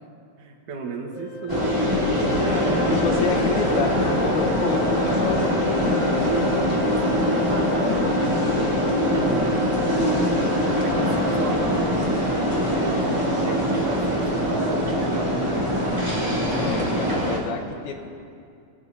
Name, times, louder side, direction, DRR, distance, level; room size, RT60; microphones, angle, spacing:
voice 1, 0.4-1.7 2.2-2.9 6.2-7.0 7.5-8.5 9.1-10.2 10.8-12.2 12.8-15.9 16.6-17.4, right 3 dB, 60° right, 1 dB, 2.9 m, -35 dB
Organ, 1.1-12.2, left 9 dB, 60° left, 3.7 m, -34 dB
sound 1, 1.5-17.4, equal, 15° right, 1.0 m, -23 dB
voice 2, 2.5-6.2 7.9-8.0 16.6-18.1, left 6 dB, 80° left, 2 dB, 3.1 m, -29 dB
25.5 x 16.0 x 2.8 m, 2.4 s
omnidirectional pair, 4.3 m